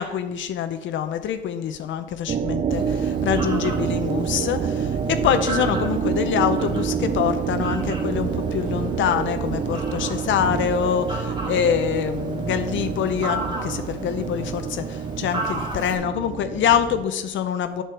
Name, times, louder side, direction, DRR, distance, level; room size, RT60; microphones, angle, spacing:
voice 1, 0.0-17.8, left 8 dB, 75° left, 9 dB, 0.6 m, -25 dB
sound 1, 2.3-17.0, right 7 dB, 40° right, 0.5 m, -27 dB
Fowl, 2.7-15.9, right 1 dB, 25° right, 2.3 m, -35 dB
7.7 x 6.7 x 4.6 m, 1.0 s
cardioid pair, 90°, 20 cm